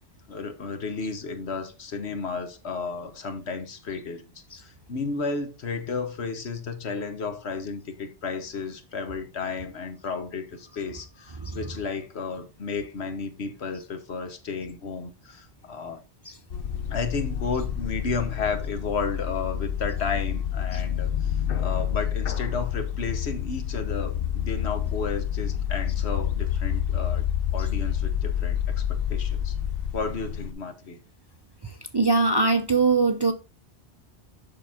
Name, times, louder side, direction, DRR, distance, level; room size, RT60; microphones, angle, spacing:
voice 1, 0.3-16.0 16.9-27.2 27.5-29.5 29.9-31.0, left 4 dB, 75° left, 1.3 m, -33 dB
sound 1, 16.5-30.5, left 9 dB, 60° left, 0.9 m, -28 dB
voice 2, 31.9-33.3, right 4 dB, 30° right, 0.5 m, -21 dB
6.8 x 5.8 x 3.6 m
omnidirectional pair, 1.1 m